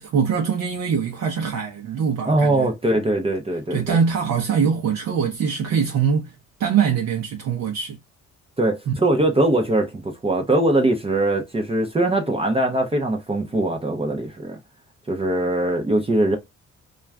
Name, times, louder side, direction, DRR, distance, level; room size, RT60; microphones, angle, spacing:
voice 1, 0.0-2.7 3.7-6.3 6.6-8.0 8.9-9.0, right 6 dB, 60° right, 0.6 m, -23 dB
voice 2, 2.2-4.0 8.6-14.6 15.1-16.4, right 1 dB, 20° right, 0.6 m, -21 dB
2.3 x 2.3 x 3.3 m
cardioid pair, 90°, 30 cm